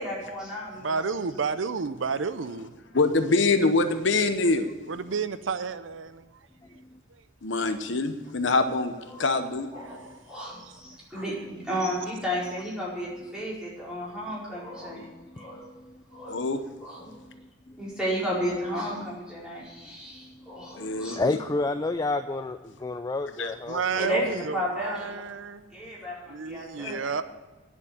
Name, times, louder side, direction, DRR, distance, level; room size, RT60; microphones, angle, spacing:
voice 1, 0.0-1.0 9.1-9.2 9.7-15.1 15.3-15.6 16.1-16.4 16.8-17.1 17.8-21.2 23.9-25.2 25.7-27.1, equal, 5° right, -7 dB, 4.6 m, -33 dB
voice 2, 0.8-2.7 4.9-6.3 9.9-10.0 10.3-10.8 23.7-25.7 26.3-27.2, right 5 dB, 85° right, 12 dB, 0.6 m, -31 dB
voice 3, 2.9-4.7 7.4-8.9 9.2-9.7 16.3-16.6 20.7-21.4 23.4-23.6 26.8-26.9, left 3 dB, 70° left, 9 dB, 0.9 m, -24 dB
voice 4, 15.1-15.9 16.2-16.4 17.2-17.4 20.4-24.1, left 2 dB, 20° left, 9 dB, 0.4 m, -31 dB
10.5 x 7.2 x 8.6 m, 1.3 s
head